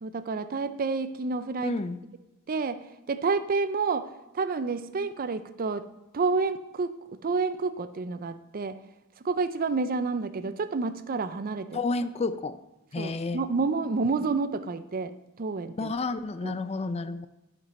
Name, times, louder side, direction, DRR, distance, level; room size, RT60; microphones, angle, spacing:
voice 1, 0.0-1.7 2.5-2.8 3.1-4.1 4.3-5.9 6.1-8.8 9.2-11.7 13.0-15.1 15.4-15.9 16.4-16.6, right 4 dB, 40° right, 12 dB, 0.5 m, -29 dB
voice 2, 1.6-2.0 11.7-12.6 12.9-13.4 15.8-17.3, left 3 dB, 30° left, 12 dB, 0.4 m, -30 dB
11.5 x 5.3 x 4.2 m, 0.99 s
head